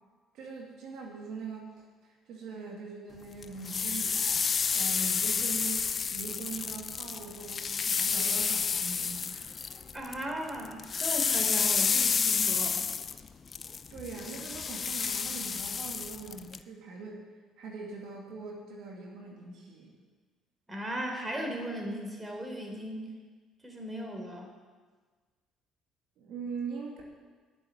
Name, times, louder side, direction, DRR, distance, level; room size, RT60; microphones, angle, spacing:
voice 1, 0.3-9.5 13.9-17.2 17.6-20.0 26.2-27.0, right 4 dB, 70° right, -1 dB, 2.4 m, -42 dB
sound 1, 3.4-10.2 10.5-16.6, left 6 dB, 40° left, 0.6 m, -30 dB
voice 2, 9.9-12.9 20.7-23.1 23.6-24.5, equal, 15° right, 2 dB, 3.6 m, -37 dB
10.5 x 7.9 x 9.5 m, 1.4 s
supercardioid pair, 70°, 0 cm